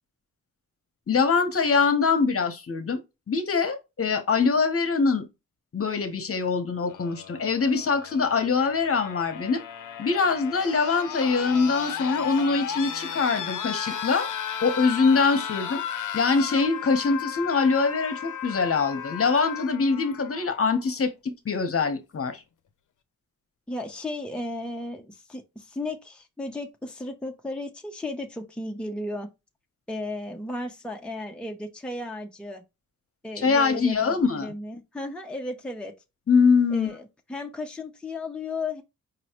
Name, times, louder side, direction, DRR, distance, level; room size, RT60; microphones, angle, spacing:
voice 1, 1.1-3.0 3.3-5.2 5.7-9.6 10.0-14.3 14.6-15.8 16.1-22.4 33.4-34.5 36.3-36.9, left 4 dB, 45° left, 1.0 m, -23 dB
sound 1, 6.8-20.8 22.0-22.1, left 8 dB, 70° left, 0.6 m, -35 dB
voice 2, 23.7-29.3 29.9-32.6 33.2-35.9 36.7-38.8, left 2 dB, 5° left, 0.7 m, -35 dB
5.2 x 3.0 x 3.0 m
wide cardioid pair, 125°, 32 cm